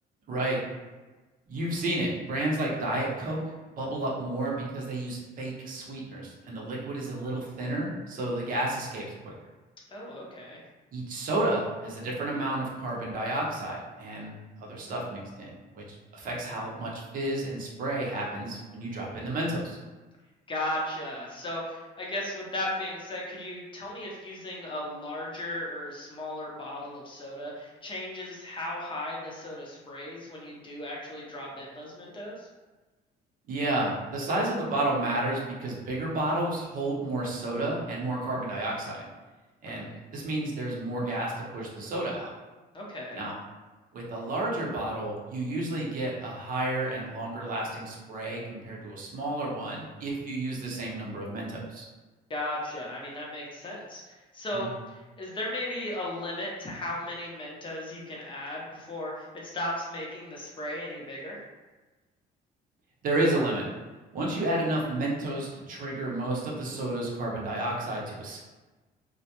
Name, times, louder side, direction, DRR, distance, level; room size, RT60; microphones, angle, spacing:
voice 1, 0.3-0.6 1.5-9.3 10.9-19.8 33.5-39.1 39.6-39.9 40.1-42.3 43.2-43.3 43.9-51.9 54.5-54.7 63.0-63.7 64.1-68.4, right 1 dB, 55° right, -3 dB, 0.7 m, -31 dB
voice 2, 9.9-10.6 20.5-32.5 39.7-40.0 42.7-43.3 52.3-61.4, left 1 dB, 30° left, -3 dB, 0.6 m, -36 dB
2.3 x 2.1 x 2.8 m, 1.2 s
cardioid pair, 110°, 17 cm